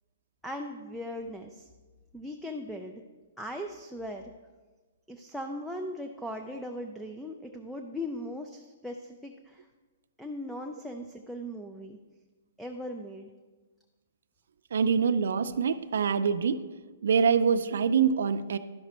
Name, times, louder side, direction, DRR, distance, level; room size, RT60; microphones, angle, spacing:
voice 1, 0.4-1.7 2.1-3.0 3.4-4.3 5.1-9.7 10.2-12.0 12.6-13.3, left 1 dB, ahead, 3 dB, 0.4 m, -38 dB
voice 2, 14.7-16.6 17.0-18.6, right 6 dB, 75° right, 8 dB, 0.4 m, -25 dB
11.5 x 6.0 x 4.2 m, 1.3 s
hypercardioid pair, 165°, 0 cm